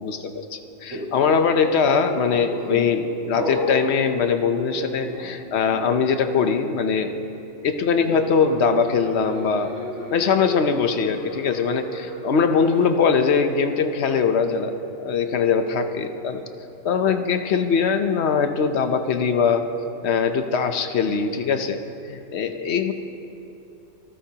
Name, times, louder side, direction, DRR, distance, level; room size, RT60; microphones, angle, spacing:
voice 1, 0.0-7.1 7.6-9.7 10.1-16.4 16.8-19.7 20.0-22.9, left 6 dB, 60° left, 8 dB, 1.0 m, -22 dB
sound 1, 0.9-1.4 1.8-3.0 3.3-3.8 4.5-5.4 5.7-6.0 8.0-12.8, left 1 dB, 20° right, 3.7 m, -33 dB
25.0 x 13.5 x 2.9 m, 2.9 s
omnidirectional pair, 1.4 m